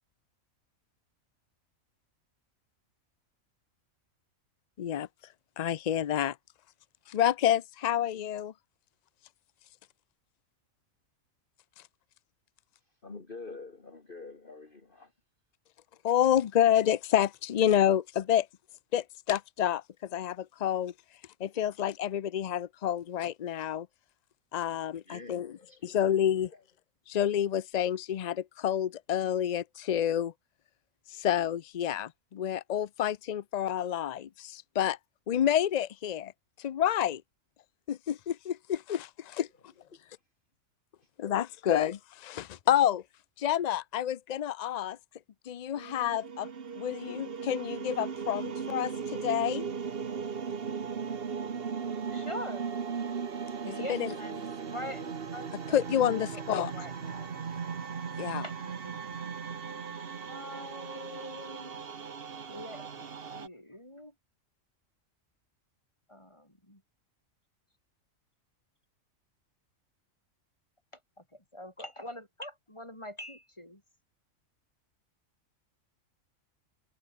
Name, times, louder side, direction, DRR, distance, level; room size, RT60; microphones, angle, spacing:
voice 1, 4.8-5.1 5.6-6.4 7.1-8.5 16.0-18.5 18.9-19.8 20.1-20.9 21.4-23.9 24.5-25.5 25.8-26.5 27.1-30.3 31.1-35.0 35.3-36.3 36.6-37.2 37.9-39.5 41.2-43.0 43.4-45.0 45.5-46.5 46.8-49.7 53.9-54.1 55.7-56.9 58.2-58.4, left 10 dB, 75° left, 0.3 m, -29 dB
voice 2, 13.0-15.1 25.1-26.0 26.5-26.6, left 3 dB, 40° left, 2.4 m, -46 dB
sound 1, 45.8-63.5, right 6 dB, 45° right, 1.3 m, -37 dB
voice 3, 52.1-52.6 53.6-56.4 56.7-57.3 58.4-61.7 62.5-63.0 63.3-64.1 66.1-66.8 71.2-73.8, left 1 dB, 20° left, 6.1 m, -44 dB
omnidirectional pair, 1.4 m